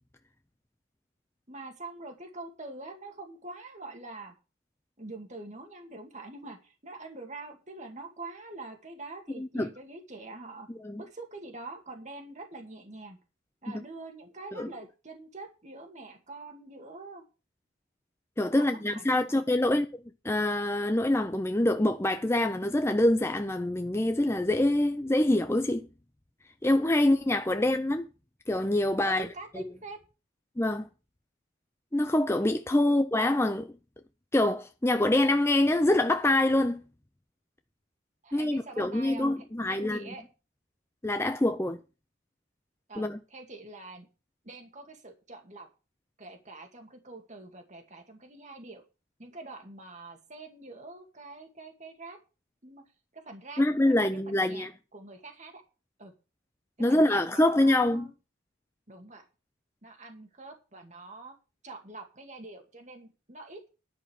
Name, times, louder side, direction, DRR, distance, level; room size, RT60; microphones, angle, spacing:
voice 1, 1.5-4.3 5.0-10.7 11.0-13.2 13.6-17.2 18.5-19.4 27.5-27.7 29.0-30.0 32.8-32.9 38.2-39.3 39.7-40.2 42.9-44.1 44.4-45.7 46.2-48.8 49.2-52.2 52.6-52.8 53.1-55.6 56.0-56.1 56.9-58.1 58.9-59.2 59.8-61.4 61.6-63.7, right 2 dB, 35° right, 2.1 m, -45 dB
voice 2, 9.4-9.7 10.8-11.0 14.6-14.7 18.4-19.9 20.2-25.9 26.6-28.1 28.5-29.3 29.5-29.7 30.6-30.9 31.9-33.7 34.3-36.8 38.3-40.1 41.0-41.8 43.0-43.2 53.6-54.7 56.8-58.1, left 1 dB, 10° left, 0.5 m, -25 dB
11.0 x 5.6 x 8.0 m
head